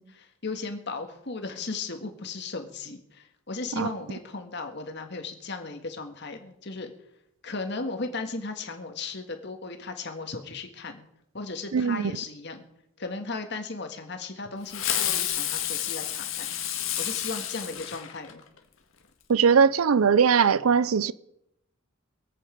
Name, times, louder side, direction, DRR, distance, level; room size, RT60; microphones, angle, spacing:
voice 1, 0.0-6.9 7.4-11.1 11.3-12.6 13.0-16.5 17.0-18.4, left 3 dB, 55° left, 1.8 m, -36 dB
voice 2, 11.7-12.1 19.3-21.1, right 6 dB, 90° right, 0.5 m, -20 dB
Fireworks, 14.7-18.6, left 11 dB, 75° left, 1.7 m, -30 dB
23.0 x 8.4 x 5.1 m
head